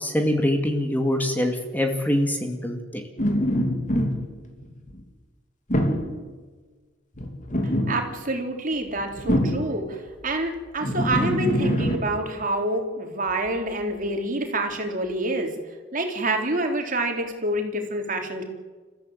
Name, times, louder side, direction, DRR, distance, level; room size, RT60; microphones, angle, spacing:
voice 1, 0.0-3.0, left 1 dB, 10° left, 3 dB, 2.2 m, -24 dB
sound 1, 3.2-5.0 5.7-6.2 7.1-8.2 8.9-9.9 10.8-12.0, equal, 40° left, 2.8 m, -24 dB
voice 2, 7.6-15.5 15.9-18.4, right 2 dB, 45° right, 3 dB, 3.6 m, -27 dB
29.5 x 15.0 x 8.0 m, 1.4 s
head